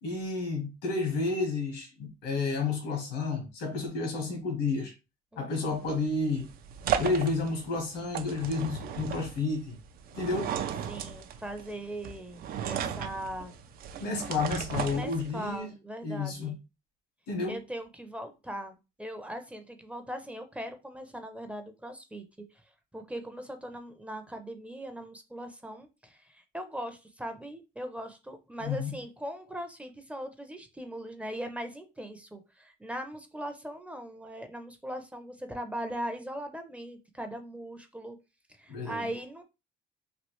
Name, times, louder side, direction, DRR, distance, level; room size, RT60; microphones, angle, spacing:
voice 1, 0.0-4.9 5.4-6.5 7.0-9.8 10.1-10.5 14.0-15.7 16.0-16.5 17.3-17.6 28.6-28.9 38.7-39.1, left 3 dB, 85° left, 1.3 m, -31 dB
voice 2, 5.3-5.8 10.9-13.5 14.9-16.6 17.5-22.2 22.9-38.2 38.6-39.4, right 1 dB, 5° right, 0.5 m, -40 dB
sound 1, 5.7-15.6, right 8 dB, 60° right, 0.4 m, -36 dB
3.1 x 2.4 x 3.0 m
cardioid pair, 110°, 17 cm